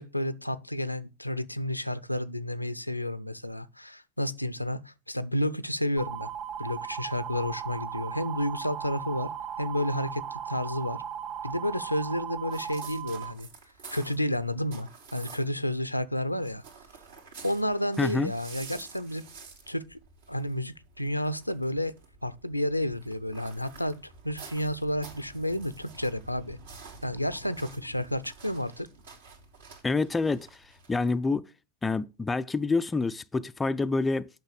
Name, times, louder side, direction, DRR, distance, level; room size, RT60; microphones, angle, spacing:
voice 1, 0.0-6.3 6.6-9.3 9.6-11.0 11.4-13.5 13.9-16.6 17.4-19.2 19.7-20.0 20.3-21.9 22.2-26.6 27.0-28.9, left 1 dB, 90° left, 0.6 m, -31 dB
sound 1, 6.0-13.3, right 9 dB, 30° right, 1.9 m, -37 dB
sound 2, 12.5-15.7 16.0-31.1, right 4 dB, 60° right, 2.5 m, -49 dB
voice 2, 18.0-18.3 29.8-30.6 30.9-31.5 31.8-34.3, left 3 dB, 10° left, 0.4 m, -27 dB
8.8 x 6.0 x 6.5 m
figure-of-eight pair, 90°, 0 cm